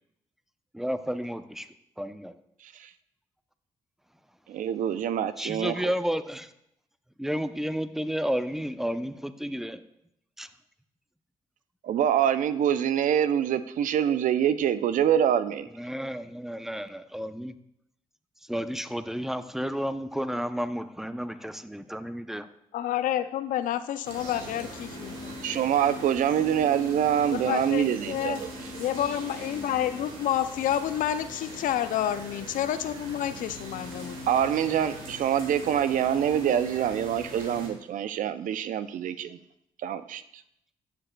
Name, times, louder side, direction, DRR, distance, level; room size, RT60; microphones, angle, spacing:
voice 1, 0.7-1.7 2.0-2.3 5.4-6.5 7.2-9.8 10.4-10.5 15.7-17.5 18.5-22.5, equal, 5° right, 12 dB, 0.6 m, -32 dB
voice 2, 4.5-5.9 11.8-15.7 25.4-28.4 34.3-39.4 39.8-40.2, right 9 dB, 70° right, 13 dB, 0.4 m, -25 dB
voice 3, 22.7-25.3 27.3-28.4 28.8-34.2, left 11 dB, 75° left, 13 dB, 0.4 m, -29 dB
sound 1, 24.0-37.7, equal, 90° right, 1.3 m, -41 dB
11.5 x 6.7 x 2.2 m, 0.78 s
supercardioid pair, 45°, 14 cm